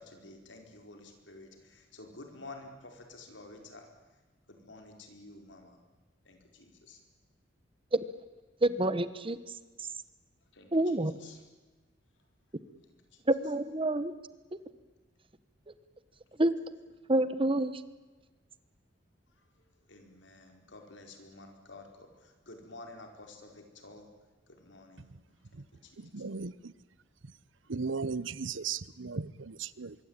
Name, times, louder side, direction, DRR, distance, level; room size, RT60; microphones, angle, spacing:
voice 1, 0.0-3.9 4.5-5.8 6.2-7.0 10.5-11.4 13.1-13.2 19.4-19.5 19.9-24.1 24.5-25.1 25.7-26.2, left 2 dB, 70° left, 4.8 m, -51 dB
voice 2, 8.6-9.4 10.7-11.1 13.3-14.1 16.4-16.5 17.1-17.7, right 1 dB, 30° right, 1.1 m, -27 dB
voice 3, 26.0-26.7 27.7-30.0, right 5 dB, 80° right, 0.9 m, -36 dB
24.5 x 23.0 x 9.0 m
head